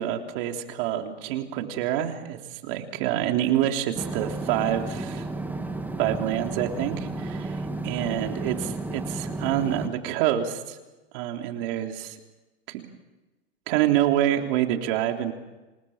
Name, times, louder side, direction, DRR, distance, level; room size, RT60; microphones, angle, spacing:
voice 1, 0.0-5.3 6.0-10.8 11.1-12.2 12.7-12.8 13.7-15.3, right 12 dB, 55° right, 4 dB, 3.5 m, -27 dB
sound 1, 3.9-9.9, right 2 dB, 5° right, 2.3 m, -32 dB
28.0 x 19.5 x 7.3 m, 1.1 s
supercardioid pair, 130°, 32 cm